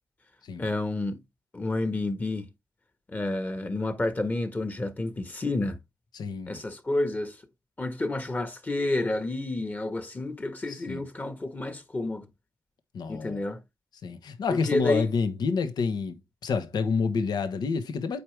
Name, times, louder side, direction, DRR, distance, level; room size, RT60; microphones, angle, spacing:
voice 1, 0.6-1.2 1.5-2.5 3.1-5.8 6.5-7.4 7.8-12.3 13.1-13.6 14.5-15.1, left 2 dB, 25° left, 1.3 m, -30 dB
voice 2, 6.1-6.6 10.7-11.0 12.9-13.4 14.0-18.2, left 5 dB, 75° left, 1.2 m, -28 dB
8.5 x 4.8 x 3.3 m
cardioid pair, 90°, 7 cm